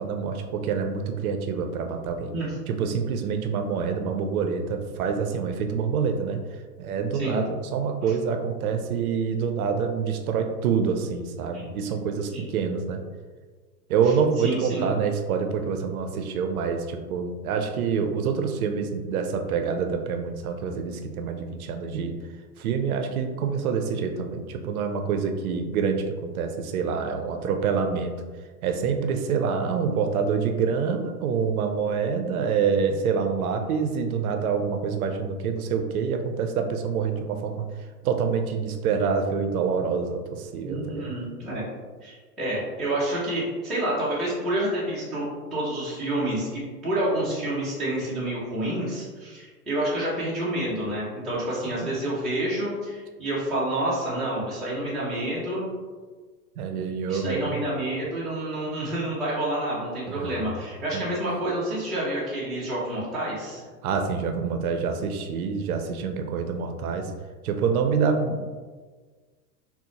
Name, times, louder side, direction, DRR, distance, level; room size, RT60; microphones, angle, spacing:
voice 1, 0.0-2.3 2.7-13.0 13.9-22.2 22.6-28.1 28.6-37.6 38.0-41.1 51.8-51.9 56.6-57.6 60.1-60.4 60.9-61.0 63.8-67.1 67.4-68.5, right 6 dB, 65° right, 5 dB, 0.5 m, -26 dB
voice 2, 14.4-14.9 40.6-41.6 42.0-55.6 57.1-63.6, right 1 dB, ahead, -12 dB, 0.3 m, -28 dB
4.0 x 2.1 x 2.8 m, 1.4 s
hypercardioid pair, 110°, 48 cm